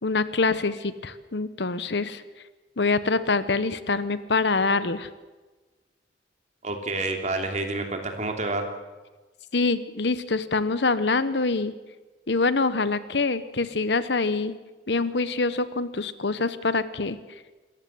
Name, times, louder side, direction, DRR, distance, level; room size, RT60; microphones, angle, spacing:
voice 1, 0.0-2.2 2.8-5.1 9.5-11.7 12.3-14.5 14.9-17.2, left 3 dB, 70° left, 14 dB, 1.1 m, -25 dB
voice 2, 6.6-8.7, right 2 dB, 40° right, 4 dB, 3.1 m, -28 dB
27.0 x 15.0 x 7.9 m, 1.2 s
head